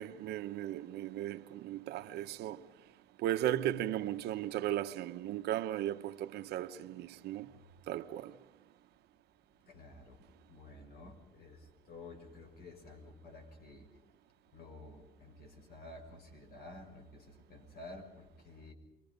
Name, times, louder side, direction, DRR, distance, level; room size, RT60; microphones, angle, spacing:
voice 1, 0.0-2.6 3.2-7.5 7.9-8.3, right 12 dB, 75° right, 1.0 m, -36 dB
voice 2, 9.7-10.2 10.5-13.9 14.5-18.7, left 2 dB, 65° left, 5.7 m, -52 dB
29.0 x 23.5 x 5.3 m
cardioid pair, 110°, 17 cm